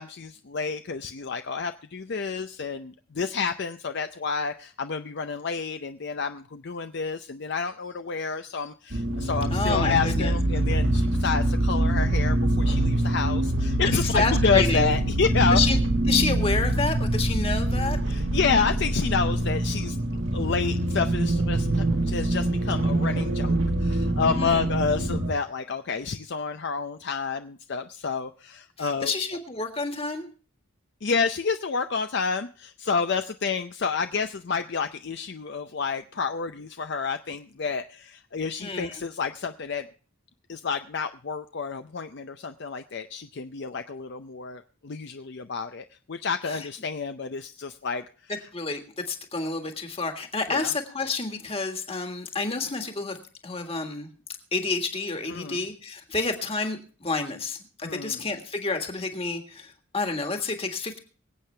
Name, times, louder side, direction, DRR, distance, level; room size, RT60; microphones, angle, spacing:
voice 1, 0.0-15.6 18.1-20.0 20.3-29.1 31.0-39.9 40.5-48.3 50.5-50.7 55.3-55.6 57.8-58.2, left 5 dB, 50° left, 8 dB, 0.5 m, -29 dB
sound 1, 8.9-25.3, right 1 dB, 65° right, 1.6 m, -24 dB
voice 2, 9.5-10.4 14.0-14.9 15.5-15.8 16.1-18.0 24.4-24.6 28.8-30.3 38.6-39.0 46.4-46.7 48.5-54.1 54.5-61.0, left 3 dB, 25° left, 5 dB, 1.7 m, -29 dB
24.0 x 8.4 x 3.3 m, 0.40 s
head